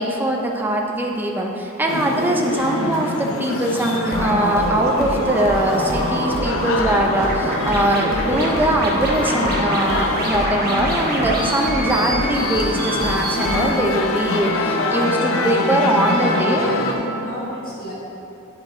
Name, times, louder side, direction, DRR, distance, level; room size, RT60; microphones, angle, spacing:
voice 1, 0.0-16.7 17.0-17.1, right 1 dB, 10° right, 0 dB, 0.5 m, -21 dB
sound 1, 1.9-17.0, left 2 dB, 70° left, 0.6 m, -25 dB
voice 2, 4.0-4.3 16.1-17.9, left 1 dB, 40° left, -8 dB, 1.6 m, -33 dB
sound 2, 4.1-13.7, right 1 dB, 45° right, 0.9 m, -26 dB
8.7 x 5.2 x 3.6 m, 3.0 s
head